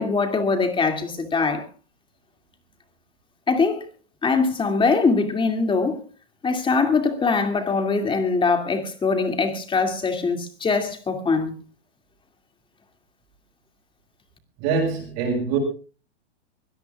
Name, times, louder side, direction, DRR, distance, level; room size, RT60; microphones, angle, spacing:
voice 1, 0.0-1.7 3.5-3.9 4.2-6.0 6.4-11.6, left 4 dB, 15° left, 2.4 m, -22 dB
voice 2, 14.6-15.6, right 5 dB, 45° right, 7.0 m, -24 dB
24.0 x 18.0 x 2.4 m
hypercardioid pair, 125°, 35 cm